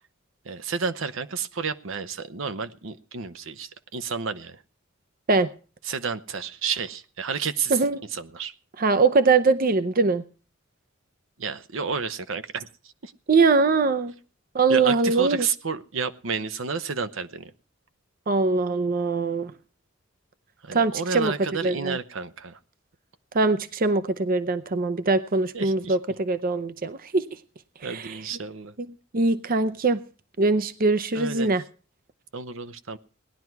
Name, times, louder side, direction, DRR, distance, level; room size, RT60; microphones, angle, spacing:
voice 1, 0.4-4.6 5.8-7.8 8.1-8.5 11.4-13.1 14.7-17.5 20.6-22.6 25.5-26.0 27.8-28.7 31.1-31.5 32.3-33.0, right 5 dB, 70° right, 0.8 m, -31 dB
voice 2, 8.8-10.2 13.3-14.1 14.5-15.5 18.3-19.5 20.7-21.3 21.6-22.0 23.3-27.4 27.8-28.2 29.1-30.0 30.4-31.6, right 3 dB, 45° right, 0.6 m, -22 dB
18.5 x 11.0 x 4.6 m
head